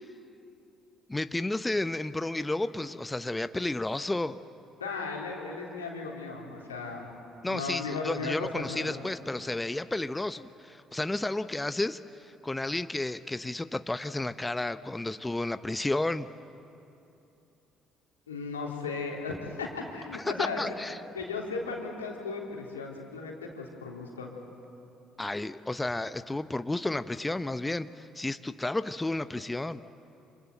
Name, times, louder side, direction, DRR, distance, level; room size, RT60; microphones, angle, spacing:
voice 1, 1.1-4.4 7.4-16.3 20.4-21.0 25.2-29.8, left 2 dB, 15° left, 12 dB, 0.8 m, -32 dB
voice 2, 4.8-7.1 7.5-9.0 18.3-20.6 21.1-24.3, left 4 dB, 90° left, -1 dB, 3.2 m, -36 dB
27.5 x 27.0 x 7.9 m, 2.8 s
hypercardioid pair, 50°, 0 cm